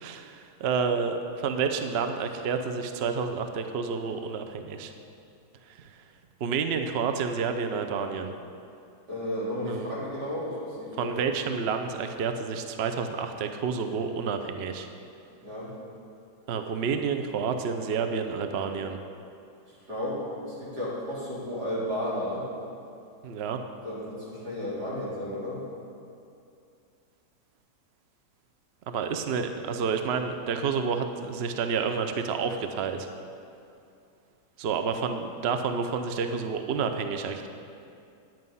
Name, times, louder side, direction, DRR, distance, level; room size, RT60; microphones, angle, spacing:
voice 1, 0.0-4.9 5.7-6.0 6.4-8.3 9.7-9.9 10.9-14.9 16.5-19.0 23.2-23.6 28.9-33.1 34.6-37.5, right 5 dB, 55° right, 7 dB, 0.7 m, -29 dB
voice 2, 9.1-11.1 15.4-15.7 19.9-22.5 23.8-25.6, left 1 dB, 90° right, -8 dB, 4.1 m, -33 dB
10.5 x 9.3 x 5.5 m, 2.5 s
omnidirectional pair, 1.7 m